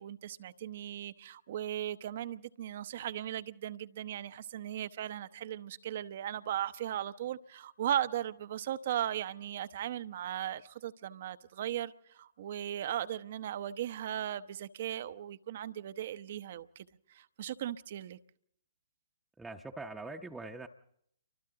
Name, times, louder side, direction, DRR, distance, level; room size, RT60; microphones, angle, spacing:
voice 1, 0.0-16.9 17.1-18.2, right 11 dB, 50° right, 0.8 m, -37 dB
voice 2, 19.4-20.7, right 2 dB, 5° right, 0.9 m, -43 dB
29.0 x 24.0 x 3.9 m
figure-of-eight pair, 125°, 0 cm